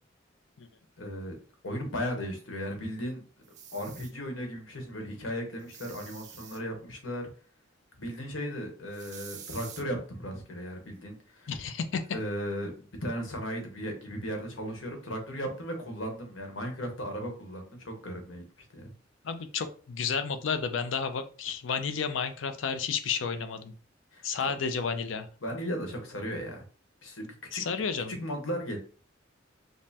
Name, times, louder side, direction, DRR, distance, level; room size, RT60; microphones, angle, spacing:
voice 1, 1.0-1.4 1.6-3.2 3.7-7.3 8.0-11.5 12.1-12.7 13.0-18.4 18.7-18.9 24.1-24.5 25.4-26.6 27.0-27.6 28.1-28.8, equal, 90° left, 3 dB, 1.1 m, -36 dB
sound 1, 3.4-4.1 5.6-6.6 8.9-9.8, right 8 dB, 40° right, 0.4 m, -47 dB
voice 2, 11.5-12.0 19.2-23.7 24.2-25.3 27.5-28.2, left 6 dB, 70° left, 9 dB, 0.5 m, -31 dB
5.3 x 2.1 x 2.8 m, 0.39 s
head